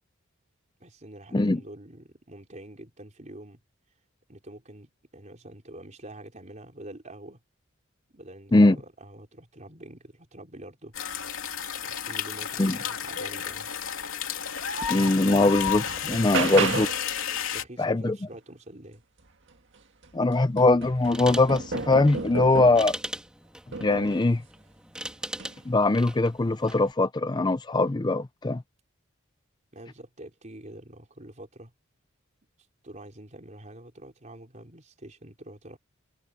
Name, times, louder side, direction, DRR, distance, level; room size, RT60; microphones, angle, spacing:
voice 1, 0.8-3.6 4.3-7.4 8.1-10.9 11.8-13.7 17.5-19.0 29.7-31.7 32.8-35.8, right 1 dB, 35° right, 4.1 m, -46 dB
sound 1, 10.9-17.6, left 8 dB, 80° left, 2.8 m, -32 dB
sound 2, 14.7-14.8 15.3-17.1 19.5-19.6 20.0-23.0 23.7-24.3 25.3-25.5, right 4 dB, 60° right, 1.8 m, -32 dB
voice 2, 14.9-16.9 17.8-18.2 20.1-22.9 23.8-24.4 25.7-28.6, left 2 dB, 20° left, 0.5 m, -22 dB
sound 3, 21.0-26.9, right 1 dB, 5° right, 1.7 m, -40 dB
head